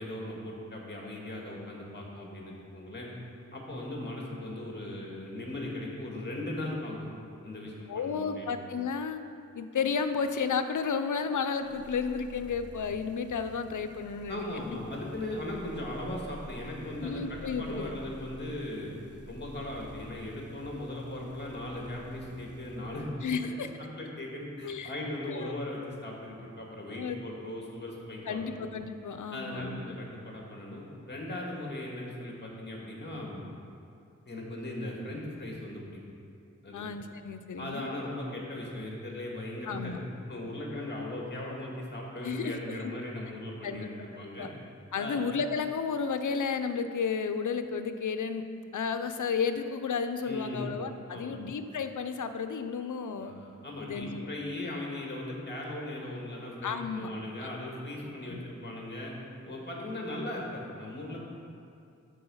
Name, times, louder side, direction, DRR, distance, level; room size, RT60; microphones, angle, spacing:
voice 1, 0.0-3.1 3.5-7.1 7.4-8.6 14.3-18.9 19.3-23.1 23.6-23.7 24.0-28.6 29.3-33.4 34.3-36.0 36.6-36.8 37.6-40.0 40.3-44.5 44.9-45.3 50.3-50.7 51.1-51.4 53.2-59.1 59.4-61.2, left 1 dB, 35° left, -2 dB, 2.0 m, -38 dB
voice 2, 7.9-9.2 9.5-14.4 17.0-17.9 23.2-23.7 24.6-24.9 25.3-25.6 26.9-27.2 28.3-29.8 36.7-37.9 39.7-40.0 42.2-42.9 43.6-43.9 44.4-44.5 44.9-48.4 48.7-53.3 53.8-54.3 56.6-57.1 57.4-57.5 58.3-58.4, left 5 dB, 80° left, 9 dB, 0.6 m, -32 dB
sound 1, 11.6-23.5, right 2 dB, 50° right, 0.8 m, -50 dB
12.5 x 4.7 x 5.6 m, 2.5 s
wide cardioid pair, 85°, 30 cm